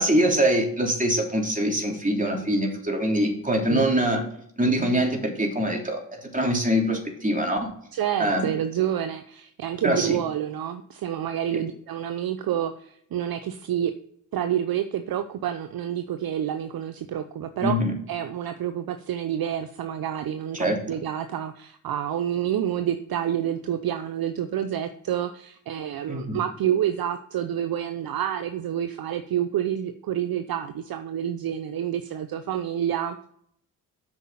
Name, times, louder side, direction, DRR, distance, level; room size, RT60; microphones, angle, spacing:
voice 1, 0.0-4.3 4.6-7.6 8.2-8.5 9.8-10.2 11.5-11.6 17.6-17.9 20.5-20.8 26.1-26.4, right 1 dB, 20° right, 1 dB, 3.3 m, -24 dB
voice 2, 7.9-13.9 14.3-17.8 18.1-33.3, right 10 dB, 55° right, 9 dB, 0.8 m, -28 dB
8.6 x 6.0 x 5.7 m, 0.67 s
hypercardioid pair, 45°, 43 cm